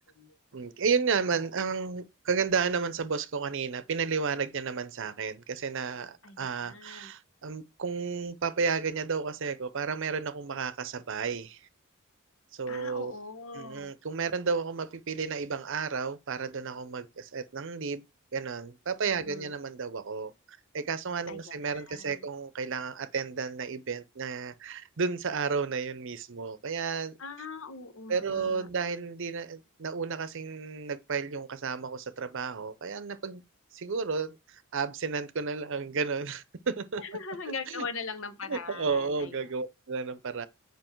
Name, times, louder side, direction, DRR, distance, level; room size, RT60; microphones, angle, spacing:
voice 1, 0.5-11.6 12.5-13.1 13.5-18.0 18.3-20.3 20.7-27.2 28.1-33.4 33.7-37.0 37.7-37.9 38.5-40.5, right 5 dB, 65° right, 0.7 m, -32 dB
voice 2, 6.2-7.1 12.7-13.9 19.2-19.5 21.3-22.3 27.2-28.7 37.0-39.3, left 4 dB, 70° left, 1.1 m, -41 dB
7.8 x 5.2 x 4.5 m
head